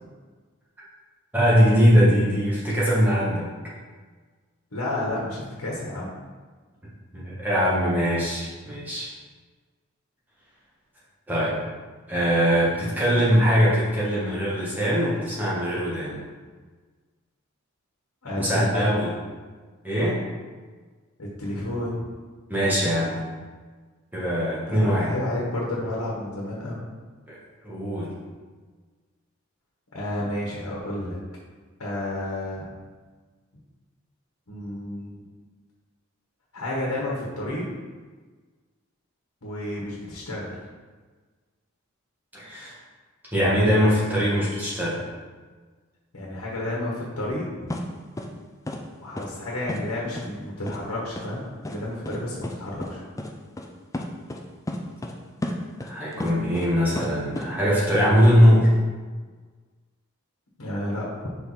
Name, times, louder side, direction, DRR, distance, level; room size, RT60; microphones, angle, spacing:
voice 1, 1.3-3.5 7.1-9.1 11.3-11.6 12.1-16.2 18.4-19.1 19.8-20.2 22.5-23.2 24.1-25.1 27.3-27.4 27.6-28.1 42.3-42.8 43.3-45.0 55.8-58.7, equal, 10° right, -8 dB, 1.5 m, -21 dB
voice 2, 4.7-6.1 18.2-18.9 21.2-22.1 24.7-26.8 29.9-31.2 31.8-32.7 34.5-35.2 36.5-37.7 39.4-40.5 46.1-47.7 49.0-53.0 60.6-61.3, left 1 dB, 85° left, -4 dB, 1.3 m, -31 dB
sound 1, 47.7-47.8 48.2-48.3 48.7-48.8 49.2-49.3 49.7-49.8 50.2-50.3 50.7-50.8 51.2-51.3 51.6-51.8 52.1-52.2 52.4-52.5 52.8-52.9 53.2-53.3 53.6-53.7 53.9-54.4 54.7-55.2 55.4-56.7 57.0-57.5, left 1 dB, 15° left, 0.4 m, -31 dB
5.1 x 4.6 x 4.1 m, 1.4 s
head